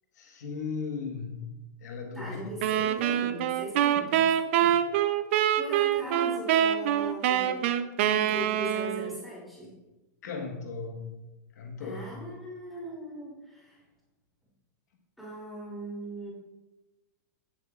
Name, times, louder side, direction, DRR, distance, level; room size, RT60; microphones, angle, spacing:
voice 1, 0.1-2.4 4.6-4.8 10.2-12.3, left 4 dB, 65° left, 3 dB, 1.3 m, -37 dB
voice 2, 2.1-4.3 5.6-7.6 8.0-9.7 11.8-13.8 15.2-16.3, equal, ahead, -7 dB, 2.7 m, -39 dB
sound 1, 2.6-9.2, right 10 dB, 40° right, 0.5 m, -25 dB
16.5 x 6.9 x 2.4 m, 1.1 s
supercardioid pair, 175°, 10 cm